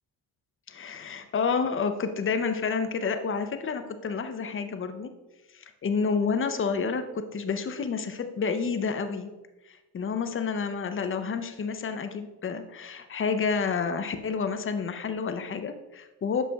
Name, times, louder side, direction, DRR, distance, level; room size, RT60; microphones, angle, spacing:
voice 1, 0.7-5.1 5.5-9.3 9.7-16.4, left 5 dB, 30° left, 8 dB, 0.6 m, -29 dB
7.2 x 5.8 x 2.3 m, 1.1 s
cardioid pair, 85°, 42 cm